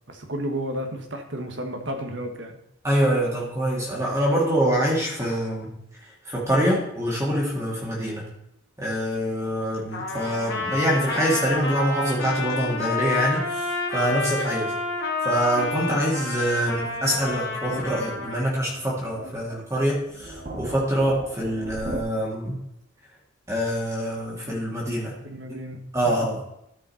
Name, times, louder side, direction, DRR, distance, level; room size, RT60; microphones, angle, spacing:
voice 1, 0.1-2.6 25.2-25.8 26.0-26.3, right 1 dB, 60° right, 4 dB, 1.5 m, -32 dB
voice 2, 2.8-5.7 6.3-8.2 8.8-13.6 13.9-14.7 15.2-22.6 23.5-25.2 25.9-26.4, equal, 15° right, -5 dB, 2.2 m, -25 dB
Trumpet, 9.9-18.4, left 3 dB, 55° left, 1.7 m, -29 dB
sound 1, 16.7-22.0, right 1 dB, 35° right, 0.9 m, -38 dB
13.0 x 5.4 x 4.3 m, 0.79 s
head